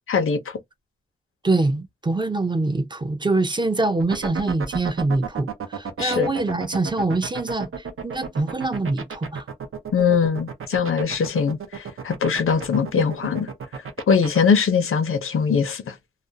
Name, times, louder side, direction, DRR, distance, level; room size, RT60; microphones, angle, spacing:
voice 1, 0.1-0.4 6.0-6.3 9.9-13.5 14.1-15.9, left 6 dB, 90° left, 0.6 m, -21 dB
voice 2, 1.4-7.7 8.0-9.4, right 2 dB, 20° right, 0.3 m, -24 dB
sound 1, 4.0-14.4, right 6 dB, 90° right, 0.6 m, -32 dB
2.4 x 2.0 x 2.7 m
wide cardioid pair, 120°, 21 cm